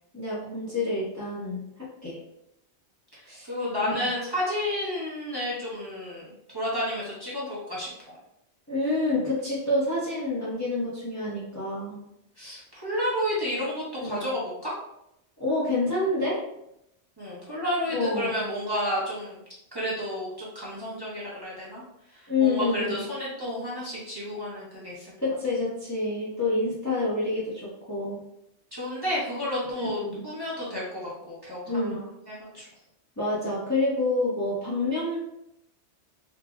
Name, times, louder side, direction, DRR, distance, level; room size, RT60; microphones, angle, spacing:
voice 1, 0.1-2.2 3.2-3.5 3.8-4.1 8.7-12.0 14.0-14.2 15.4-16.4 17.9-18.3 22.3-22.9 25.2-28.2 29.8-30.3 31.7-32.1 33.2-35.2, left 2 dB, 20° left, -7 dB, 0.6 m, -28 dB
voice 2, 3.5-8.2 12.4-14.7 17.2-19.4 19.7-21.8 22.1-25.1 28.7-32.6, left 1 dB, 25° right, -8 dB, 0.7 m, -31 dB
3.8 x 2.0 x 2.3 m, 0.81 s
omnidirectional pair, 1.1 m